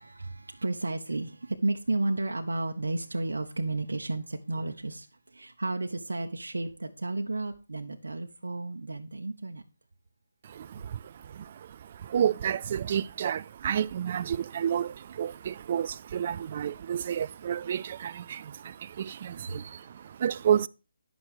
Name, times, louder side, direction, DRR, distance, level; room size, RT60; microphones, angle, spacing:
voice 1, 0.0-9.6 19.5-20.2, right 2 dB, 85° right, 1.0 m, -33 dB
voice 2, 10.4-20.7, right 9 dB, 40° right, 0.4 m, -31 dB
11.0 x 6.2 x 4.9 m
hypercardioid pair, 160°, 0 cm